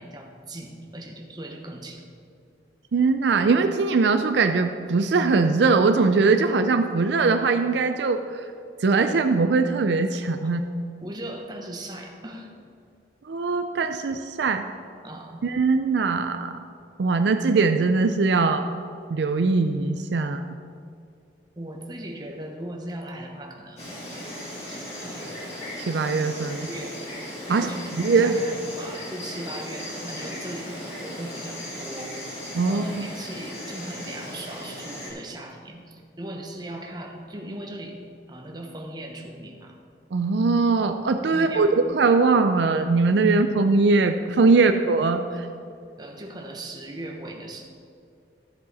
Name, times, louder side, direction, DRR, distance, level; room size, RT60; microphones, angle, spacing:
voice 1, 0.0-2.0 10.4-10.6 11.0-12.5 15.0-15.4 21.6-24.4 24.7-25.3 26.4-27.0 27.5-38.0 38.3-39.8 41.3-41.7 43.3-43.4 44.5-44.7 46.0-47.6, right 1 dB, 25° right, 2 dB, 1.0 m, -38 dB
voice 2, 2.9-8.4 8.8-10.6 13.3-14.6 15.4-16.5 17.0-18.7 19.1-20.4 25.9-26.7 27.5-27.7 28.0-28.4 32.5-33.1 40.1-45.5, right 4 dB, 70° right, 7 dB, 0.5 m, -21 dB
Insect, 23.8-35.1, left 1 dB, 35° left, 2.8 m, -37 dB
12.5 x 7.7 x 4.1 m, 2.4 s
head